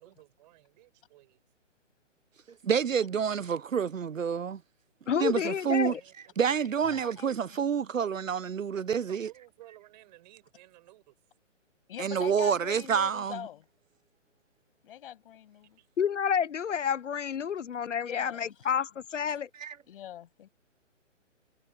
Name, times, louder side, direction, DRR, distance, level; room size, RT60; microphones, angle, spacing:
voice 1, 0.0-1.4 5.2-6.8 8.7-11.1 15.8-15.9, right 16 dB, 35° right, 5.3 m, -56 dB
voice 2, 2.6-4.6 5.1-5.9 6.4-9.3 12.0-13.5 19.6-19.8, right 7 dB, 85° right, 0.8 m, -28 dB
voice 3, 5.1-6.0 16.0-19.5, left 7 dB, 70° left, 0.8 m, -29 dB
voice 4, 6.8-7.3 11.9-13.6 14.8-15.8 17.4-17.5 18.0-18.5 19.9-20.5, left 11 dB, 45° left, 7.6 m, -43 dB
figure-of-eight pair, 135°, 38 cm